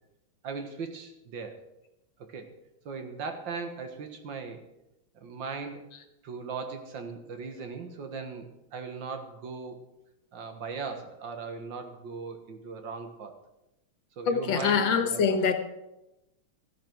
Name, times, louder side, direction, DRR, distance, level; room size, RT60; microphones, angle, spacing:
voice 1, 0.4-1.6 2.2-2.5 2.9-4.6 5.2-5.9 6.2-9.8 10.3-13.3 14.2-15.2, right 5 dB, 65° right, 2.2 m, -38 dB
voice 2, 14.3-15.5, left 6 dB, 70° left, 1.9 m, -24 dB
14.5 x 11.0 x 4.6 m
omnidirectional pair, 2.2 m